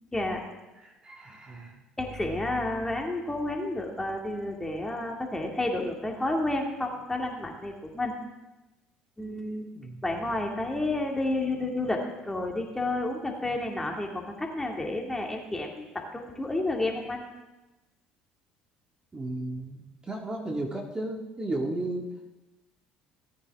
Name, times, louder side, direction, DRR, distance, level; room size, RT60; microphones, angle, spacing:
voice 1, 0.1-0.4 2.0-8.1 9.2-9.7 10.0-17.2, left 2 dB, 10° left, 1 dB, 2.3 m, -30 dB
voice 2, 0.8-1.8 9.7-10.0 19.1-22.1, right 2 dB, 25° right, 1 dB, 1.9 m, -34 dB
17.5 x 9.2 x 3.6 m, 1.0 s
supercardioid pair, 75°, 3 cm